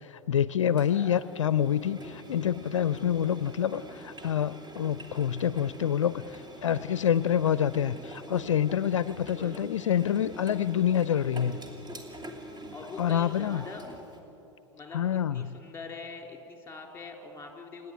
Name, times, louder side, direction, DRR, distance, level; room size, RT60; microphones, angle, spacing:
voice 1, 0.1-11.6 13.0-13.6 14.9-15.4, left 9 dB, 85° left, 16 dB, 0.5 m, -27 dB
Engine, 0.8-14.2, right 1 dB, 25° right, 2.9 m, -45 dB
voice 2, 9.2-9.6 12.7-13.8 14.7-17.9, left 4 dB, 15° left, 2 dB, 3.8 m, -43 dB
27.5 x 10.5 x 9.3 m, 2.9 s
hypercardioid pair, 90°, 16 cm